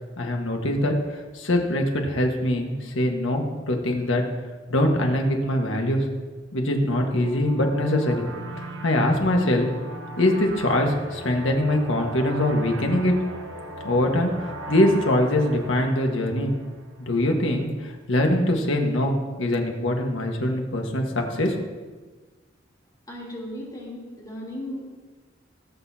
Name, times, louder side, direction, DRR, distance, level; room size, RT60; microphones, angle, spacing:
voice 1, 0.2-4.2 4.7-6.0 6.5-8.3 8.8-9.7 10.2-13.1 13.8-14.3 14.7-16.5 17.0-21.6, left 1 dB, 80° left, 2 dB, 1.6 m, -23 dB
sound 1, 6.8-17.2, right 2 dB, 75° right, 1.1 m, -38 dB
voice 2, 23.1-25.1, left 1 dB, 20° left, -5 dB, 3.3 m, -36 dB
18.0 x 8.2 x 2.9 m, 1.3 s
head